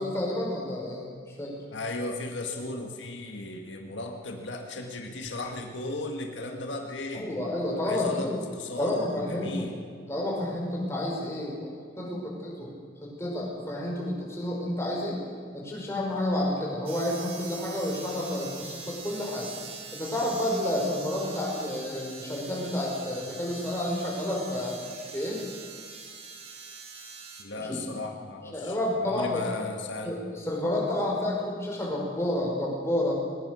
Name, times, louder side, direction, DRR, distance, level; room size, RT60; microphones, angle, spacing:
voice 1, 0.0-1.5 2.6-2.7 7.1-8.4 8.8-9.7 10.1-11.7 12.0-12.7 13.0-15.2 15.5-19.5 19.9-24.8 25.1-25.4 27.6-27.8 28.5-29.4 30.0-33.1, left 1 dB, 15° left, -2 dB, 5.3 m, -30 dB
voice 2, 1.7-7.3 7.8-9.7 27.4-30.2, left 2 dB, 85° left, 3 dB, 1.9 m, -36 dB
sound 1, 16.9-27.4, right 5 dB, 30° right, 2.2 m, -43 dB
21.0 x 20.0 x 6.4 m, 2.1 s
head